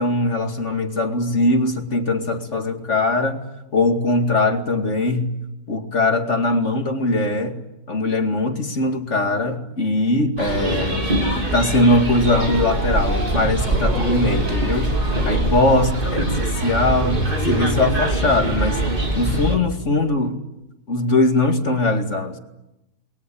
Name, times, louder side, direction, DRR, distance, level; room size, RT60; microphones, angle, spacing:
voice 1, 0.0-3.4 3.7-5.3 5.7-7.6 7.9-11.1 11.5-14.9 15.3-18.8 19.2-20.4 20.9-22.4, left 2 dB, 45° left, 5 dB, 2.6 m, -21 dB
sound 1, 10.4-19.6, right 1 dB, 30° right, 3.5 m, -22 dB
29.0 x 21.5 x 8.6 m, 0.95 s
omnidirectional pair, 1.8 m